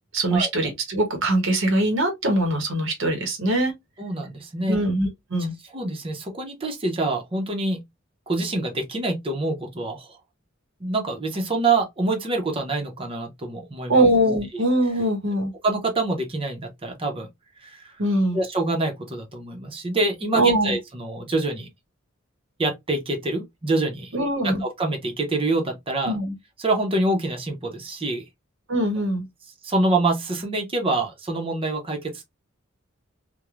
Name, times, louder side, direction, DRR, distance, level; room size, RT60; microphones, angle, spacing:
voice 1, 0.1-3.7 4.7-5.5 13.9-15.5 18.0-18.4 20.3-20.8 24.1-24.6 26.0-26.3 28.7-29.2, right 1 dB, 70° right, 0.9 m, -22 dB
voice 2, 4.0-4.8 5.7-7.8 8.3-10.2 10.8-14.0 14.5-14.6 15.6-17.3 17.6-17.9 18.3-21.7 22.6-24.1 24.4-26.2 26.6-28.2 29.6-32.2, right 2 dB, 30° right, 0.7 m, -26 dB
3.0 x 2.2 x 2.3 m
head